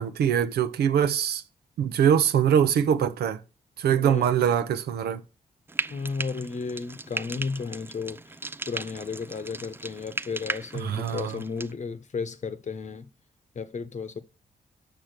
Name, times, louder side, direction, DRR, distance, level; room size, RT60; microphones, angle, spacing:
voice 1, 0.0-1.4 1.8-3.4 3.8-5.2 10.7-11.4, right 8 dB, 80° right, 0.7 m, -23 dB
voice 2, 3.9-4.3 5.9-8.4 8.7-13.1 13.5-14.2, left 4 dB, 45° left, 1.0 m, -33 dB
Frying (food), 5.7-11.7, right 2 dB, 15° right, 0.4 m, -37 dB
6.2 x 6.0 x 6.6 m
cardioid pair, 65°, 16 cm